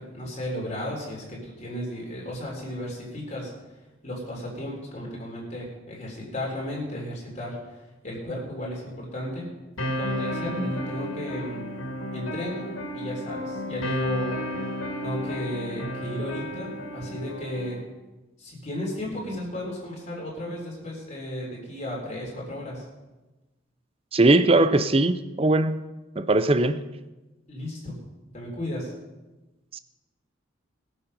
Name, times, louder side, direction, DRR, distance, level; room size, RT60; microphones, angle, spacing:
voice 1, 0.0-3.5 4.0-9.5 10.0-11.6 12.1-14.3 14.6-14.7 15.0-17.8 18.4-22.8 27.5-28.0 28.3-28.9, left 1 dB, 35° left, -3 dB, 3.6 m, -34 dB
sound 1, 9.8-17.8, equal, 80° left, 2.4 m, -32 dB
voice 2, 24.1-25.8 26.2-26.8 29.7-29.8, right 2 dB, 30° right, 12 dB, 0.5 m, -20 dB
21.0 x 7.1 x 5.5 m, 1.1 s
head